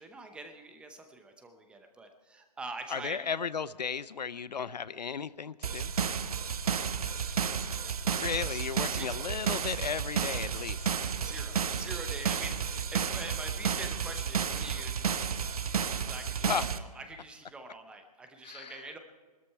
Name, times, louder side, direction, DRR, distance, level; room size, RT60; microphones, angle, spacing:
voice 1, 0.0-3.3 6.6-7.3 7.8-8.1 8.5-9.1 11.1-15.3 15.9-19.0, right 3 dB, 5° right, 6 dB, 0.8 m, -45 dB
voice 2, 2.9-5.9 8.1-10.9 16.4-16.7 18.4-18.9, left 6 dB, 90° left, 17 dB, 0.6 m, -35 dB
sound 1, 5.6-16.8, right 7 dB, 60° right, 1.0 m, -32 dB
20.5 x 13.0 x 4.6 m, 1.4 s
hypercardioid pair, 150°, 21 cm